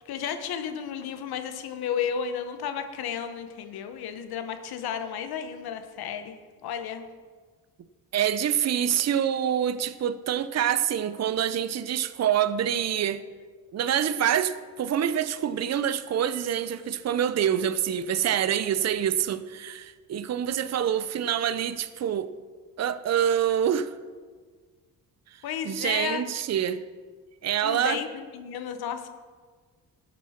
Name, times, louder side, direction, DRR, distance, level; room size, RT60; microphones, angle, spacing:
voice 1, 0.1-7.1 25.4-26.2 27.6-29.1, left 8 dB, 80° left, 1.1 m, -33 dB
voice 2, 8.1-13.2 13.7-22.3 22.8-23.9 25.6-26.8 27.4-28.0, right 9 dB, 45° right, 0.6 m, -26 dB
12.5 x 8.5 x 4.3 m
cardioid pair, 80°, 37 cm